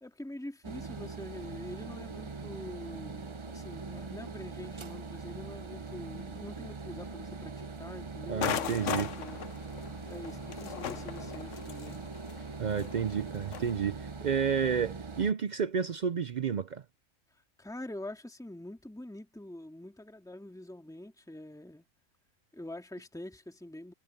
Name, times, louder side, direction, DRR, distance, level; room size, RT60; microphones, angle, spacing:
voice 1, 0.0-9.5 10.1-12.0 17.3-21.8 22.5-23.9, left 1 dB, ahead, 2.1 m, -45 dB
sound 1, 0.6-15.3, right 4 dB, 30° right, 0.6 m, -42 dB
voice 2, 8.3-9.1 12.6-16.8, right 7 dB, 75° right, 0.4 m, -31 dB
sound 2, 8.4-13.7, left 9 dB, 65° left, 1.1 m, -37 dB
omnidirectional pair, 1.4 m